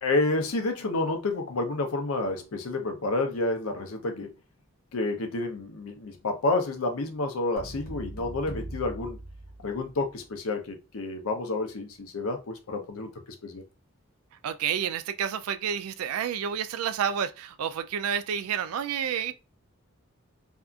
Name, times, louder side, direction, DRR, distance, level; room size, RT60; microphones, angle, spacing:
voice 1, 0.0-4.3 4.9-9.2 9.6-13.1 13.4-13.6, left 2 dB, 80° left, 0.6 m, -29 dB
sound 1, 7.6-10.1, right 1 dB, 45° left, 0.9 m, -40 dB
voice 2, 14.4-19.3, right 8 dB, 85° right, 0.3 m, -29 dB
2.7 x 2.4 x 2.3 m
head